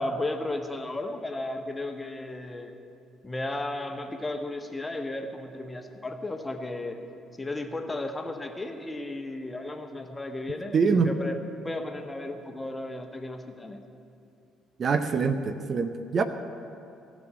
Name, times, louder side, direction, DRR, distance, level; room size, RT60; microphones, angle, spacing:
voice 1, 0.0-2.7 3.2-7.0 7.4-11.4 11.6-13.8, left 2 dB, 20° left, 5 dB, 1.2 m, -34 dB
voice 2, 10.7-11.1 14.8-16.2, right 5 dB, 45° right, 9 dB, 0.6 m, -24 dB
15.0 x 6.3 x 9.7 m, 2.6 s
figure-of-eight pair, 45°, 0 cm